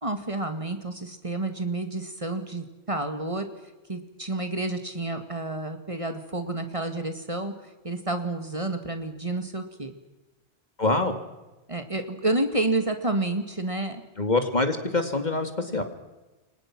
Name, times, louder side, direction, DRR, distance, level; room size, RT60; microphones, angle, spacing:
voice 1, 0.0-3.5 3.9-7.5 7.8-9.9 11.7-14.0, right 2 dB, 30° right, 7 dB, 2.2 m, -29 dB
voice 2, 10.8-11.1 14.2-15.8, left 2 dB, 40° left, 7 dB, 2.6 m, -25 dB
29.0 x 23.5 x 6.1 m, 1.1 s
omnidirectional pair, 1.1 m